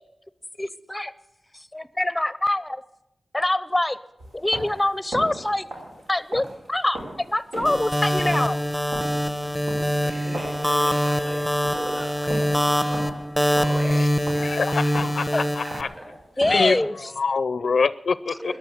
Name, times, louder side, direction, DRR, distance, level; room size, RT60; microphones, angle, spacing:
voice 1, 0.6-1.1 1.7-2.8 3.3-4.0 4.3-5.7 6.1-7.0 7.3-8.6 15.3-15.4 16.4-16.9, left 1 dB, 15° left, 17 dB, 0.7 m, -24 dB
sound 1, 4.2-16.7, right 1 dB, 85° right, 4.8 m, -38 dB
sound 2, 7.6-15.8, equal, 5° right, 0.9 m, -24 dB
voice 2, 9.9-12.5 12.8-13.0 13.5-14.4 15.6-16.1 16.4-16.8 18.4-18.6, right 1 dB, 25° right, 1 dB, 7.4 m, -36 dB
voice 3, 14.4-15.9 16.5-18.6, left 5 dB, 75° left, 17 dB, 0.4 m, -25 dB
14.0 x 10.0 x 8.4 m, 0.92 s
wide cardioid pair, 85°, 0 cm